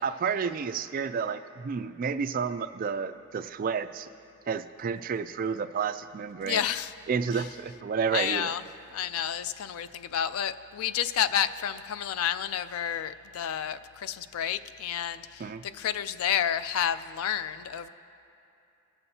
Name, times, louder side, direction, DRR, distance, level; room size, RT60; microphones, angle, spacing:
voice 1, 0.0-4.1 4.5-6.7 7.1-8.5 15.4-15.6, right 6 dB, 40° right, 10 dB, 0.3 m, -31 dB
voice 2, 6.4-6.9 7.3-7.5 8.1-8.6 8.9-17.9, left 9 dB, 85° left, 13 dB, 0.4 m, -30 dB
20.0 x 6.9 x 2.8 m, 2.7 s
head